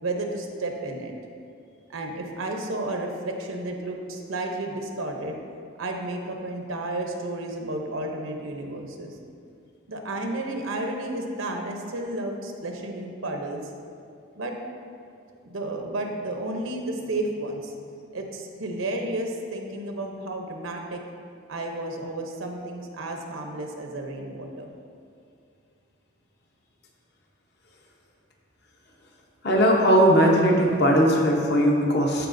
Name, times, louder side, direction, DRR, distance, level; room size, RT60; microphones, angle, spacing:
voice 1, 0.0-1.1 1.9-5.4 5.8-9.2 9.9-13.6 14.4-14.6 15.4-17.8 18.1-21.0 21.5-24.7, right 2 dB, 75° right, 2 dB, 0.8 m, -32 dB
voice 2, 29.4-32.3, equal, 50° left, 0 dB, 0.9 m, -19 dB
12.5 x 4.6 x 2.6 m, 2.4 s
head